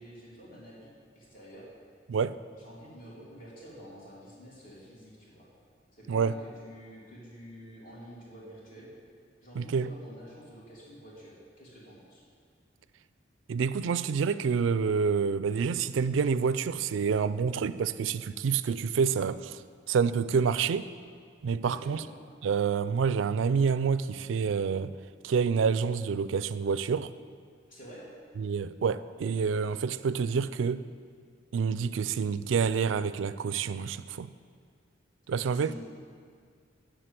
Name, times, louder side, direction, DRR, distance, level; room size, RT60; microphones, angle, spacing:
voice 1, 0.0-1.6 2.6-5.5 5.9-8.9 9.4-12.2 21.6-22.1 27.7-28.0 35.5-35.7, equal, 50° left, -6 dB, 2.9 m, -49 dB
voice 2, 9.5-9.9 13.5-19.6 19.9-20.9 21.4-22.0 22.4-24.9 25.2-27.1 28.4-30.8 31.5-34.3 35.3-35.7, right 6 dB, 80° right, 15 dB, 0.4 m, -28 dB
7.7 x 6.5 x 8.2 m, 2.1 s
head